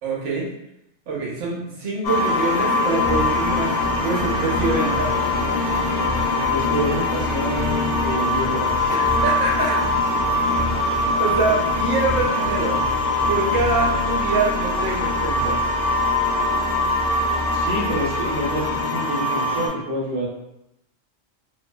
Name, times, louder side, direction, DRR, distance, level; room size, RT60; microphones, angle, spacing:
voice 1, 0.0-0.5 1.1-5.1 8.9-9.8 11.0-12.8 13.2-15.6, right 3 dB, 60° right, -3 dB, 0.8 m, -25 dB
sound 1, 2.0-19.7, left 2 dB, 65° left, 0.7 m, -22 dB
sound 2, 3.0-18.8, equal, 20° left, 0.5 m, -32 dB
voice 2, 6.3-8.9 17.5-20.3, equal, 85° right, -3 dB, 1.0 m, -27 dB
2.6 x 2.2 x 2.2 m, 0.84 s
omnidirectional pair, 1.3 m